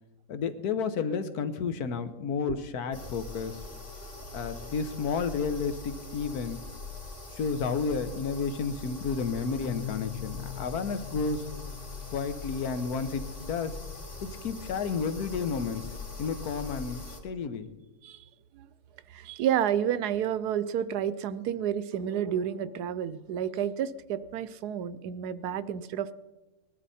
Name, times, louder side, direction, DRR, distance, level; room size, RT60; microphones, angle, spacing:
voice 1, 0.3-3.6 4.3-6.6 7.3-11.5 12.1-13.8 14.2-17.7, left 5 dB, 75° left, 10 dB, 1.5 m, -31 dB
sound 1, 2.9-17.2, left 3 dB, 35° left, 3.2 m, -42 dB
sound 2, 9.5-17.2, left 13 dB, 90° left, 3.3 m, -44 dB
voice 2, 19.1-26.1, right 9 dB, 80° right, 15 dB, 1.2 m, -30 dB
20.0 x 12.0 x 4.2 m, 1.1 s
omnidirectional pair, 1.7 m